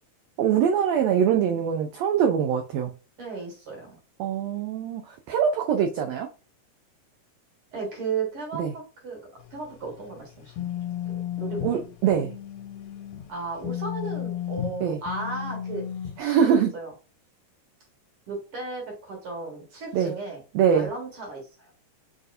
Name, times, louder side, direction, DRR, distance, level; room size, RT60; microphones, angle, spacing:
voice 1, 0.4-2.9 4.2-6.3 8.6-8.7 11.6-12.3 14.8-15.0 16.2-16.7 19.9-20.1 20.5-20.9, right 8 dB, 90° right, 1.4 m, -23 dB
voice 2, 3.2-4.0 7.7-9.2 9.5-10.7 11.4-11.8 13.3-15.8 16.5-16.9 18.3-20.4 20.7-21.7, right 4 dB, 55° right, 1.8 m, -35 dB
sound 1, 9.5-13.3 13.6-16.2, left 10 dB, 80° left, 2.0 m, -33 dB
6.1 x 2.7 x 2.5 m
omnidirectional pair, 3.5 m